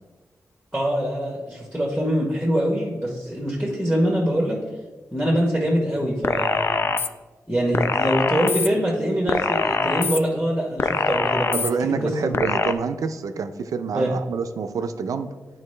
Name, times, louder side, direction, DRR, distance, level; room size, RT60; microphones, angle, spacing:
voice 1, 0.7-4.6 5.1-6.8 7.5-12.4 13.9-14.1, equal, 5° right, -2 dB, 1.1 m, -24 dB
sound 1, 6.2-7.1 7.7-8.7 9.3-10.2 10.8-11.7 12.3-12.7, left 4 dB, 45° left, 0.3 m, -23 dB
voice 2, 11.5-15.3, right 5 dB, 80° right, 9 dB, 0.4 m, -27 dB
10.0 x 4.5 x 3.2 m, 1.3 s
wide cardioid pair, 120°, 6 cm